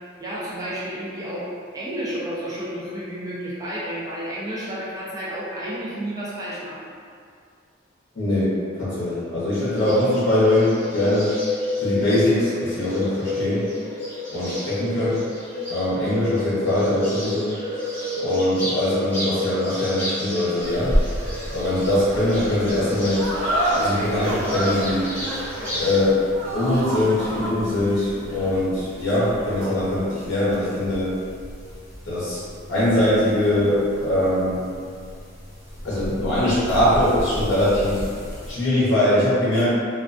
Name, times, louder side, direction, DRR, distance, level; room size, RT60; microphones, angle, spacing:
voice 1, 0.2-6.9, right 1 dB, 20° right, -9 dB, 0.4 m, -31 dB
voice 2, 8.1-11.4 11.8-13.7 14.3-15.2 15.7-17.6 18.2-21.0 21.5-23.3 23.7-25.1 25.8-26.3 26.5-31.1 32.0-34.6 35.8-38.0 38.5-39.7, left 1 dB, 65° left, -10 dB, 0.7 m, -22 dB
Bird, 9.5-26.0, left 1 dB, 10° left, 0.9 m, -31 dB
sound 1, 20.6-38.5, equal, 35° right, 1.3 m, -34 dB
sound 2, 23.1-29.9, right 1 dB, 80° right, 0.5 m, -28 dB
2.3 x 2.2 x 2.4 m, 2.2 s
head